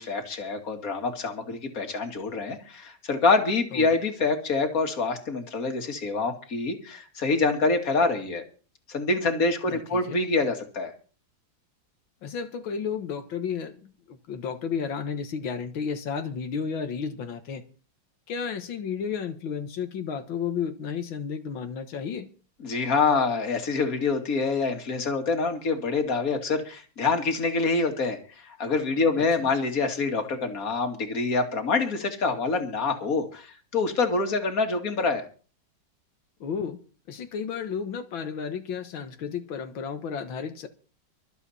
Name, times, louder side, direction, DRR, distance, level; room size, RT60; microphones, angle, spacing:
voice 1, 0.0-8.4 8.9-10.9 22.6-35.2, left 4 dB, 45° left, 2.6 m, -26 dB
voice 2, 9.7-10.2 12.2-17.6 18.3-22.3 29.2-29.5 36.4-36.8 37.1-40.7, left 6 dB, 90° left, 2.1 m, -32 dB
24.5 x 8.2 x 4.3 m
omnidirectional pair, 2.1 m